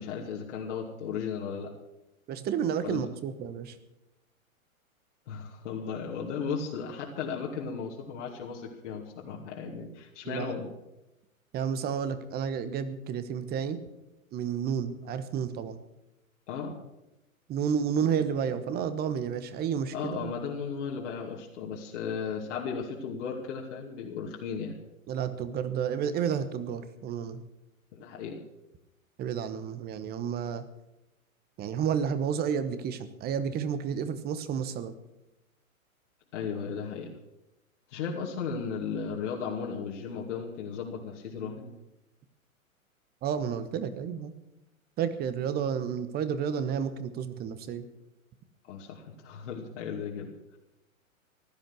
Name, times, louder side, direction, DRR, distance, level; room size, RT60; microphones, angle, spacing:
voice 1, 0.0-1.7 2.8-3.0 5.3-10.7 16.5-16.8 19.9-24.8 27.9-28.4 36.3-37.1 37.9-41.7 48.6-50.3, left 6 dB, 55° left, -1 dB, 2.6 m, -35 dB
voice 2, 2.3-3.8 10.2-10.6 11.5-13.8 14.3-15.8 17.5-20.3 25.1-27.4 29.2-30.6 31.6-34.9 43.2-44.3 45.0-47.9, right 7 dB, 20° right, 12 dB, 1.2 m, -31 dB
16.0 x 11.5 x 6.2 m, 0.94 s
figure-of-eight pair, 115°, 42 cm